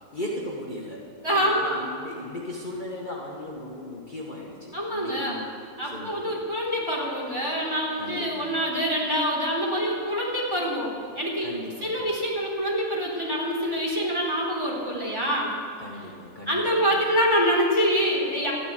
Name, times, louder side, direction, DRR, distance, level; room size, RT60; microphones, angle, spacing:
voice 1, 0.1-5.5 5.8-6.4 8.0-8.6 11.4-12.1 15.8-16.9, left 1 dB, 35° left, -4 dB, 1.8 m, -37 dB
voice 2, 1.2-1.8 4.7-5.4 5.8-11.5 11.8-15.5 16.5-18.5, equal, 15° right, -4 dB, 4.0 m, -25 dB
14.0 x 11.0 x 9.3 m, 2.6 s
omnidirectional pair, 1.5 m